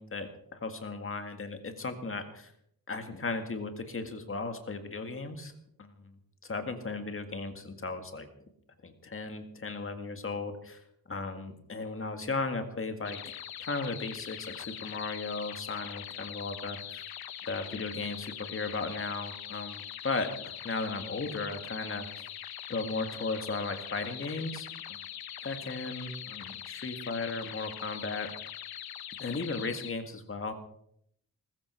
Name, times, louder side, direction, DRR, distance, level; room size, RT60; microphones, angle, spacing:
voice 1, 0.0-2.5 2.9-5.5 5.8-5.9 6.4-8.3 8.8-13.3 13.6-17.0 17.5-22.1 22.7-25.0 25.4-28.3 29.2-30.5, left 3 dB, 35° left, 7 dB, 2.0 m, -36 dB
sound 1, 13.0-29.9, left 10 dB, 75° left, 0.9 m, -42 dB
20.0 x 15.0 x 4.6 m, 0.71 s
wide cardioid pair, 140°, 37 cm